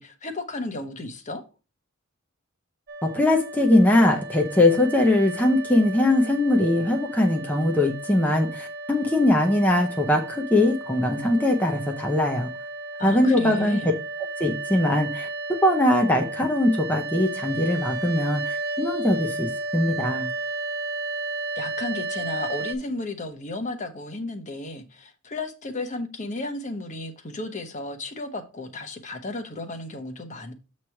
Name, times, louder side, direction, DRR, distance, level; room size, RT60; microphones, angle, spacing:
voice 1, 0.0-1.4 13.0-13.9 21.5-30.5, left 2 dB, 35° left, 1.0 m, -33 dB
sound 1, 2.9-22.8, right 3 dB, 50° right, 0.8 m, -33 dB
voice 2, 3.1-12.5 13.0-13.9 14.4-15.3 15.6-20.3, left 1 dB, 10° left, 0.7 m, -21 dB
7.5 x 3.1 x 5.7 m
head